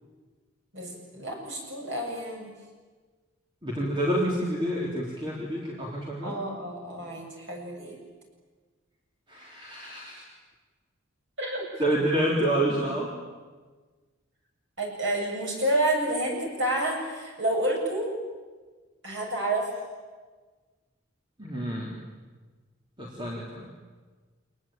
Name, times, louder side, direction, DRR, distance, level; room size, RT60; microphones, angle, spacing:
voice 1, 0.7-2.5 6.2-8.0 11.4-11.8 14.8-18.1 19.0-19.7, right 1 dB, 60° right, 0 dB, 7.6 m, -29 dB
voice 2, 3.6-6.4 9.3-10.3 11.8-13.1 21.4-21.9 23.0-23.7, right 1 dB, 25° right, -3 dB, 3.6 m, -28 dB
28.0 x 20.5 x 9.0 m, 1.4 s
head